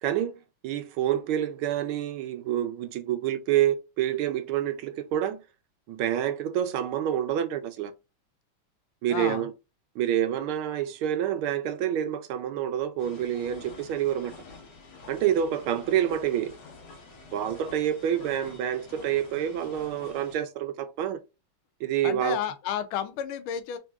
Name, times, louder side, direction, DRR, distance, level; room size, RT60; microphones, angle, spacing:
voice 1, 0.0-5.4 5.9-7.9 9.0-9.5 10.0-14.3 15.1-16.6 17.3-21.2 21.8-22.4, right 10 dB, 80° right, 1.4 m, -28 dB
voice 2, 9.1-9.5 22.0-23.8, left 9 dB, 80° left, 1.5 m, -31 dB
sound 1, 13.0-20.4, left 4 dB, 60° left, 1.6 m, -48 dB
3.8 x 3.4 x 2.3 m
omnidirectional pair, 2.4 m